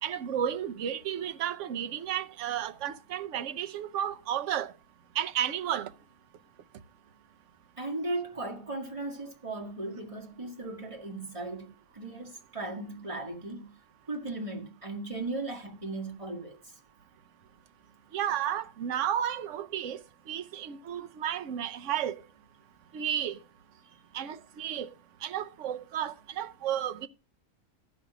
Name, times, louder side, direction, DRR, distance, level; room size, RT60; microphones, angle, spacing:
voice 1, 0.0-4.7 5.1-5.9 18.1-22.2 22.9-23.4 24.1-24.9 25.2-27.1, right 10 dB, 65° right, 1.0 m, -32 dB
voice 2, 7.8-13.7 14.1-16.6, right 2 dB, 25° right, 1.8 m, -37 dB
14.0 x 5.7 x 4.9 m
omnidirectional pair, 1.5 m